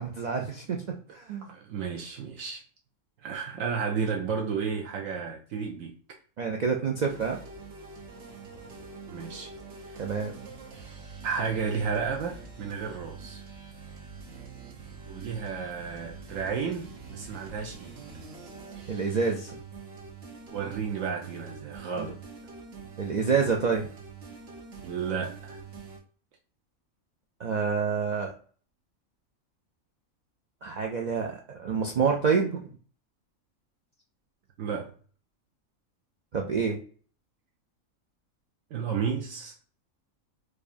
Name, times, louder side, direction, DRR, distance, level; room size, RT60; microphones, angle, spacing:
voice 1, 0.0-1.5 6.4-7.4 10.0-10.3 18.9-19.6 21.9-22.1 23.0-23.9 27.4-28.3 30.6-32.7 36.3-36.8, right 5 dB, 90° right, 0.3 m, -28 dB
voice 2, 1.4-2.6 3.2-6.2 9.1-9.5 9.9-10.1 11.2-13.4 15.1-17.9 20.5-22.2 24.8-25.6 34.6-34.9 38.7-39.5, right 6 dB, 75° right, 1.0 m, -32 dB
sound 1, 7.0-26.0, right 4 dB, 50° right, 1.1 m, -45 dB
4.9 x 2.4 x 2.5 m
omnidirectional pair, 1.4 m